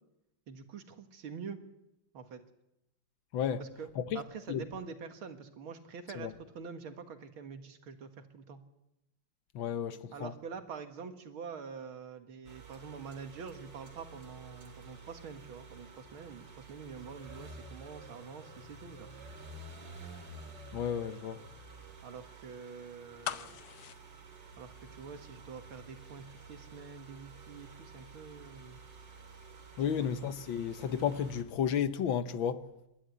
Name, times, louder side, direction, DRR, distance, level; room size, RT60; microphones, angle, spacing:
voice 1, 0.5-1.6 2.1-2.4 3.6-3.9 4.1-8.6 10.1-19.1 22.0-23.6 24.6-28.8 30.0-30.1, right 6 dB, 80° right, 2.5 m, -46 dB
voice 2, 9.5-10.3 20.7-21.4 29.8-32.7, left 8 dB, 75° left, 1.7 m, -32 dB
sound 1, 12.4-31.4, right 3 dB, 60° right, 3.3 m, -51 dB
sound 2, 23.2-25.3 25.6-25.7, left 10 dB, 90° left, 1.8 m, -41 dB
28.0 x 12.5 x 9.7 m
omnidirectional pair, 2.2 m